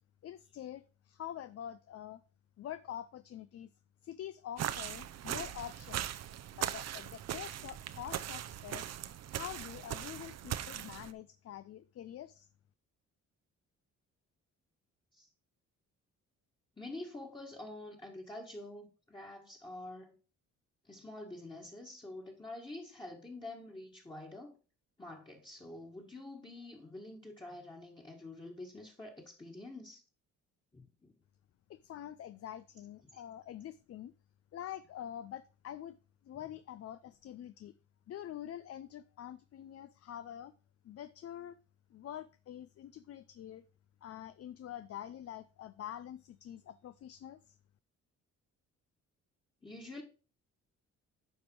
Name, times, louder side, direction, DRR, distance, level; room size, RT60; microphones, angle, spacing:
voice 1, 0.2-2.2 2.6-3.7 4.0-6.0 6.5-8.9 9.3-12.5 31.7-34.1 34.5-36.0 36.2-37.7 38.1-40.5 40.8-41.6 41.9-43.6 44.0-47.6, left 11 dB, 50° left, 0.5 m, -46 dB
sound 1, 4.6-11.1, right 11 dB, 60° right, 0.7 m, -40 dB
voice 2, 16.8-20.1 20.8-24.6 25.0-30.0 30.7-31.1 33.1-33.2 49.6-50.0, left 2 dB, 15° left, 1.7 m, -47 dB
9.6 x 5.3 x 4.6 m
cardioid pair, 90°, 30 cm